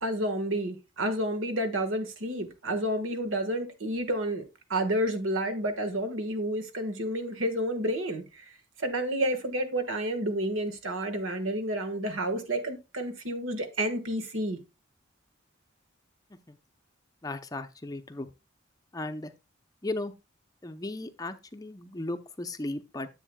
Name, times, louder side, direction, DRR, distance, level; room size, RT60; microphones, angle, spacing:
voice 1, 0.0-4.4 4.7-8.4 8.8-14.6, right 1 dB, 85° right, 1.5 m, -30 dB
voice 2, 17.2-18.3 18.9-19.3 19.8-20.1 20.6-23.1, left 2 dB, 20° left, 0.5 m, -36 dB
10.0 x 7.7 x 2.2 m
head